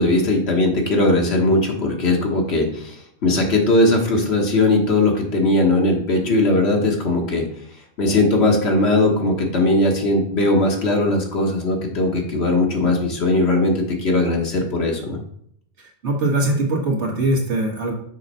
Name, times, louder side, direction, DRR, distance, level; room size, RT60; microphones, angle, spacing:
voice 1, 0.0-7.5 8.0-15.2, left 2 dB, 60° left, 1 dB, 1.5 m, -19 dB
voice 2, 15.8-17.9, right 2 dB, 65° right, 0 dB, 1.8 m, -22 dB
6.4 x 3.9 x 5.4 m, 0.67 s
omnidirectional pair, 1.2 m